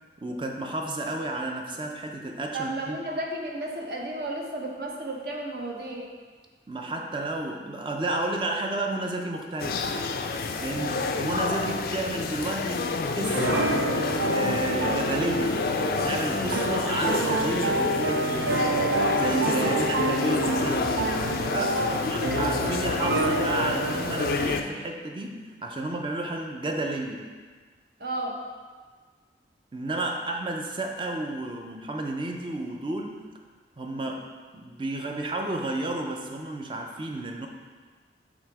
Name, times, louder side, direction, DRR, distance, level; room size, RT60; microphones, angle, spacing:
voice 1, 0.2-3.0 6.7-9.9 10.6-10.9 11.2-13.8 14.2-15.7 16.0-21.1 21.5-27.3 29.7-33.2 33.8-34.3 34.5-37.5, right 2 dB, 30° right, 2 dB, 0.5 m, -31 dB
voice 2, 2.5-6.1 10.7-11.0 16.4-16.6 19.6-19.9 21.7-22.0 28.0-28.4, right 2 dB, 60° right, -1 dB, 0.8 m, -33 dB
sound 1, 9.6-24.6, left 4 dB, 55° left, 0.4 m, -28 dB
sound 2, 13.3-24.6, right 2 dB, 85° right, 0.4 m, -28 dB
7.4 x 2.9 x 4.7 m, 1.5 s
head